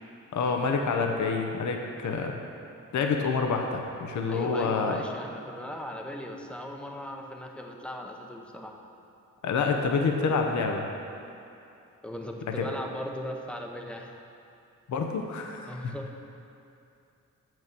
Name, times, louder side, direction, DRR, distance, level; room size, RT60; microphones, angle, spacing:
voice 1, 0.3-2.4 2.9-5.0 9.4-10.9 12.6-12.7 14.9-15.9, left 4 dB, 65° left, 3 dB, 0.8 m, -27 dB
voice 2, 4.3-8.7 12.0-14.1 15.7-16.1, left 1 dB, 5° left, 1 dB, 0.7 m, -38 dB
7.5 x 6.2 x 6.9 m, 2.6 s
wide cardioid pair, 130°, 31 cm